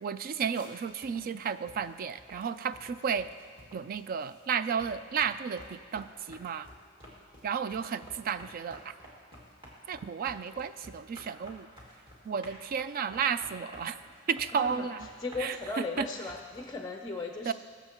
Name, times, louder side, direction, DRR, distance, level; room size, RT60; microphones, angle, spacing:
voice 1, 0.0-3.3 3.7-6.7 7.4-8.9 9.9-11.7 12.2-14.0 14.3-15.1 15.4-16.1 17.5-17.6, right 6 dB, 45° right, 13 dB, 0.3 m, -33 dB
sound 1, 0.5-4.5 4.8-16.6, equal, 25° right, 2.2 m, -51 dB
voice 2, 14.5-14.9 15.2-17.5, left 3 dB, 20° left, 3 dB, 0.5 m, -36 dB
21.0 x 7.0 x 3.0 m, 2.1 s
head